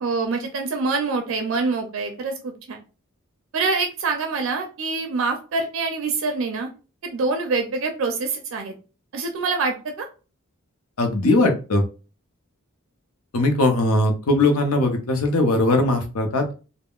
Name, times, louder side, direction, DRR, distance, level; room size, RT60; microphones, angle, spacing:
voice 1, 0.0-2.8 3.5-6.7 7.0-8.8 9.1-10.1, right 4 dB, 60° right, 5 dB, 0.4 m, -25 dB
voice 2, 11.0-11.8 13.3-16.5, left 2 dB, 85° left, 5 dB, 0.6 m, -20 dB
3.6 x 2.0 x 2.3 m, 0.34 s
head